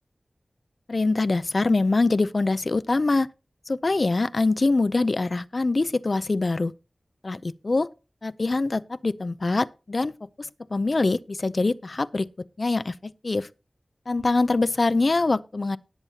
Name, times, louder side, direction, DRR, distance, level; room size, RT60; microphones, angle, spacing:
voice 1, 0.9-3.3 3.7-6.7 7.2-7.9 8.2-10.1 10.4-12.3 12.6-13.5 14.1-15.8, left 3 dB, 55° left, 0.5 m, -24 dB
19.0 x 7.2 x 2.8 m
wide cardioid pair, 75°, 0 cm